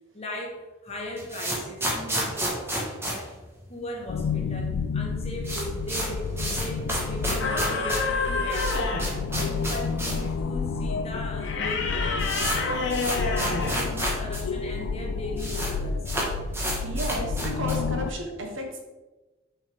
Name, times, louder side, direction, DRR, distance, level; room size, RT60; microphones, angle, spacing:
voice 1, 0.1-3.3 3.7-8.7 9.0-11.9 13.4-16.1, left 1 dB, 30° left, 0 dB, 1.3 m, -38 dB
sound 1, 0.9-4.2 4.4-4.5 4.7-4.8 5.1-10.3 10.6-10.7 11.4-11.5 11.7-14.4 14.7-14.8 15.0-15.7 16.0-17.9, right 1 dB, 10° right, 1.3 m, -31 dB
sound 2, 4.1-18.1, left 5 dB, 75° left, 0.4 m, -30 dB
sound 3, 7.4-9.2 11.4-13.9, left 3 dB, 55° left, 0.9 m, -28 dB
voice 2, 16.8-18.8, equal, 65° right, 3 dB, 1.1 m, -33 dB
6.4 x 5.5 x 3.5 m, 1.1 s
head